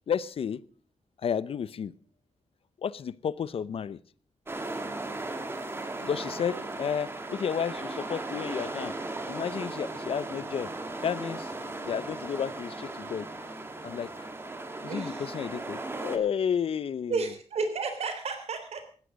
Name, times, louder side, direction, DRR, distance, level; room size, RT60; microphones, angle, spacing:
voice 1, 0.1-0.6 1.2-1.9 2.8-4.0 6.0-8.9 9.3-10.7 11.0-11.5 11.8-13.3 13.8-14.3 14.8-17.2, left 7 dB, 60° left, 0.6 m, -32 dB
sound 1, 4.5-16.2, right 2 dB, 20° right, 2.1 m, -37 dB
voice 2, 5.8-6.6 14.7-15.4 17.1-18.9, right 4 dB, 75° right, 3.6 m, -34 dB
17.0 x 13.0 x 5.2 m
wide cardioid pair, 150°, 11 cm